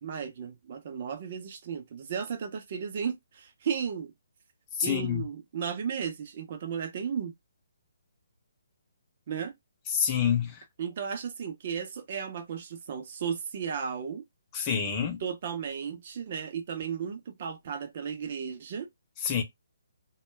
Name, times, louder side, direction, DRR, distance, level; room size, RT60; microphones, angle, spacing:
voice 1, 0.0-4.1 4.8-7.3 9.3-9.5 10.8-14.2 15.2-18.9, right 7 dB, 45° right, 0.7 m, -34 dB
voice 2, 4.8-5.2 9.9-10.6 14.5-15.2 19.2-19.4, left 8 dB, 20° left, 0.7 m, -27 dB
2.2 x 2.0 x 3.2 m
hypercardioid pair, 155°, 0 cm